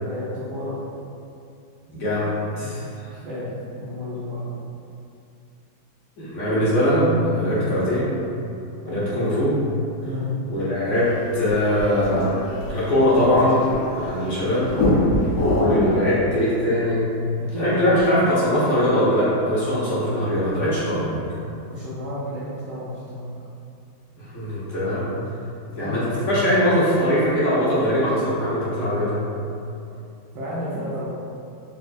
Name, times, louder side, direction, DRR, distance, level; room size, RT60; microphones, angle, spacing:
voice 1, 0.0-0.8 2.6-3.4 3.8-4.6 7.4-7.6 8.9-9.2 10.0-10.3 17.5-18.0 21.7-23.3 25.8-26.1 30.3-31.1, left 1 dB, 65° right, -10 dB, 1.1 m, -32 dB
voice 2, 1.9-3.1 6.2-8.1 8.8-9.5 10.5-13.7 13.9-14.7 15.5-17.1 17.6-21.2 24.2-25.2 25.7-29.2, equal, 55° left, -10 dB, 0.8 m, -21 dB
sound 1, 11.2-14.2 14.7-16.0, left 1 dB, 80° left, 1.4 m, -23 dB
4.3 x 2.3 x 2.5 m, 2.6 s
omnidirectional pair, 2.2 m